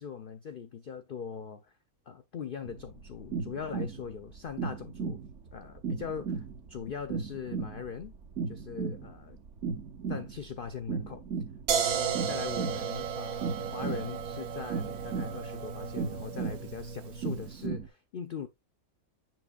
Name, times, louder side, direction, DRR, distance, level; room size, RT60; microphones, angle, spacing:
voice 1, 0.0-1.7 2.1-5.2 5.5-8.1 8.5-9.4 10.1-11.2 11.7-18.5, left 7 dB, 80° left, 0.4 m, -41 dB
sound 1, 2.6-17.9, right 5 dB, 60° right, 1.0 m, -36 dB
sound 2, 11.7-17.5, right 7 dB, 75° right, 1.3 m, -34 dB
7.5 x 6.1 x 2.3 m
omnidirectional pair, 1.6 m